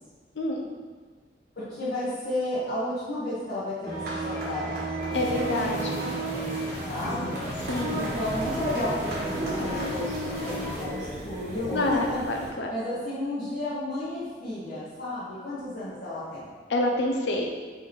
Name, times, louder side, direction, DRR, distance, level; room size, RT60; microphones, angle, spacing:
voice 1, 1.5-4.9 6.9-7.4 7.9-16.4, left 1 dB, 55° left, -14 dB, 1.3 m, -32 dB
sound 1, 3.8-12.2, right 2 dB, 60° right, 1.2 m, -33 dB
voice 2, 5.1-6.0 7.7-8.0 11.7-12.7 16.7-17.5, left 1 dB, 80° left, 1 dB, 0.5 m, -27 dB
sound 2, 5.1-10.8, equal, 15° left, 1.5 m, -36 dB
sound 3, 7.4-12.5, right 1 dB, 40° right, 0.5 m, -40 dB
4.1 x 3.2 x 3.8 m, 1.5 s
head